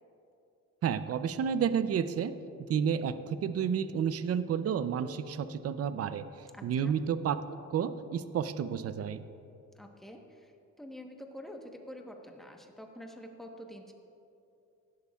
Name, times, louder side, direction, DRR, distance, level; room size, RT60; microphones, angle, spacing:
voice 1, 0.8-2.3 2.7-6.3 6.6-7.4 7.7-9.2, right 7 dB, 50° right, 13 dB, 0.6 m, -30 dB
voice 2, 6.5-6.9 9.7-10.5 10.8-13.9, equal, ahead, 2 dB, 1.1 m, -47 dB
17.0 x 11.0 x 2.4 m, 2.7 s
cardioid pair, 90°, 30 cm